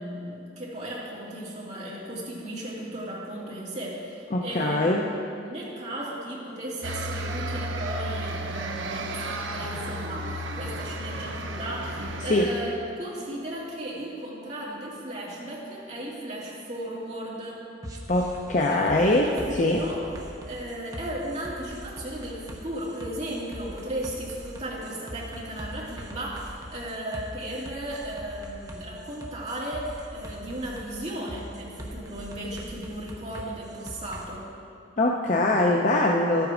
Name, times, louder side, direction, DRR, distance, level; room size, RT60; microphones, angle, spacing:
voice 1, 0.0-17.6 18.7-20.0 20.5-34.5, right 1 dB, 35° right, -5 dB, 2.3 m, -35 dB
voice 2, 4.3-5.0 11.3-11.4 12.3-12.5 18.1-19.3 19.6-19.8 35.0-36.5, left 2 dB, 40° left, 0 dB, 0.6 m, -22 dB
sound 1, 6.8-12.6, right 1 dB, 85° right, 0.8 m, -33 dB
sound 2, 17.8-34.2, equal, 20° right, 0.9 m, -42 dB
11.5 x 8.1 x 5.0 m, 2.5 s
head